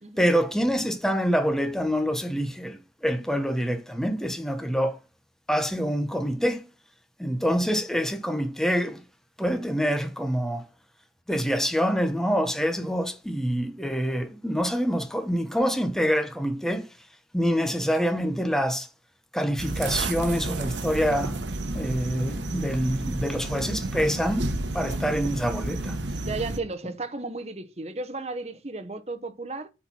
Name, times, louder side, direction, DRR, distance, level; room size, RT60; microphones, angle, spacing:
voice 1, 0.2-5.0 5.5-6.7 7.2-9.0 9.4-10.7 11.3-16.9 17.3-18.9 19.3-21.4 21.7-26.0, equal, 5° left, 0.9 m, -26 dB
sound 1, 19.6-26.6, right 2 dB, 85° right, 1.1 m, -31 dB
voice 2, 26.2-29.7, right 3 dB, 35° right, 0.9 m, -34 dB
8.7 x 4.5 x 5.5 m
head